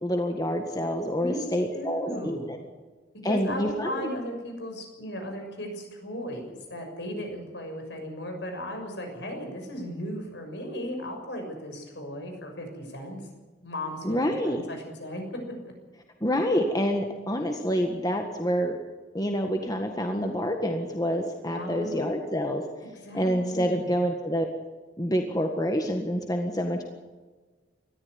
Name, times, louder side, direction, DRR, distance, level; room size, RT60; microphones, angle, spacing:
voice 1, 0.0-2.6 3.2-4.1 14.0-14.6 16.2-18.8 19.1-22.6 23.1-24.4 25.0-26.8, equal, 20° left, 3 dB, 1.7 m, -27 dB
voice 2, 1.7-2.7 3.2-13.2 13.6-15.2 15.6-15.7 21.5-22.1 22.8-23.9, equal, 65° left, 4 dB, 6.5 m, -36 dB
20.0 x 14.0 x 9.7 m, 1.3 s
head